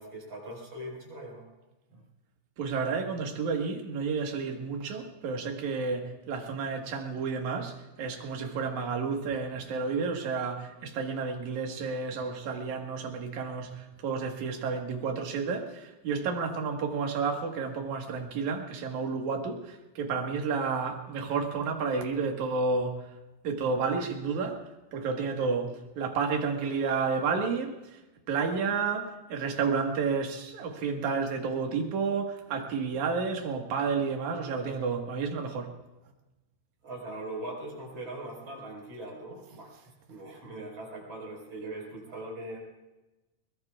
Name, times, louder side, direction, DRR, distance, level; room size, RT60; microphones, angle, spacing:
voice 1, 0.0-1.4 1.9-2.0 36.8-42.6, right 1 dB, 40° right, 6.2 m, -41 dB
voice 2, 2.6-23.1 23.4-24.6 24.9-28.0 28.3-35.7, right 5 dB, 60° right, 2.8 m, -31 dB
22.5 x 22.5 x 2.5 m
omnidirectional pair, 4.3 m